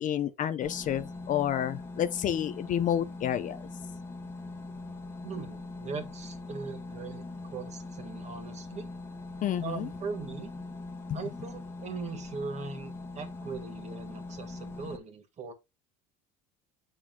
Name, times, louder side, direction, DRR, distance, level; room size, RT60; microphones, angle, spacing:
voice 1, 0.0-3.6 9.4-9.9 11.1-11.2, left 10 dB, 40° left, 0.7 m, -29 dB
sound 1, 0.6-15.0, left 2 dB, 10° left, 1.4 m, -42 dB
voice 2, 5.2-7.2 7.5-8.9 9.6-10.5 11.1-15.5, right 4 dB, 35° right, 1.8 m, -40 dB
7.5 x 6.2 x 2.3 m
supercardioid pair, 115°, 19 cm